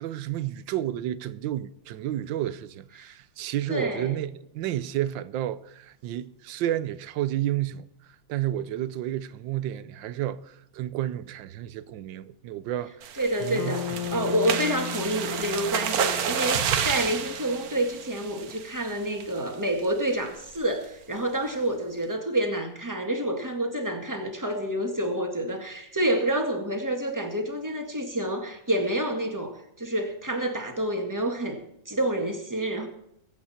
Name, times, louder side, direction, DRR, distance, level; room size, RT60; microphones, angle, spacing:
voice 1, 0.0-7.9 8.3-13.1 13.4-14.1, right 12 dB, 80° right, 1.4 m, -31 dB
voice 2, 3.7-4.2 13.2-32.9, right 1 dB, 10° right, 1.8 m, -28 dB
sound 1, 13.0-18.8 19.2-19.5 19.8-19.9 20.3-20.6, right 8 dB, 60° right, 1.3 m, -30 dB
Bass guitar, 13.6-17.7, left 11 dB, 65° left, 1.2 m, -37 dB
22.0 x 8.5 x 4.3 m
omnidirectional pair, 2.0 m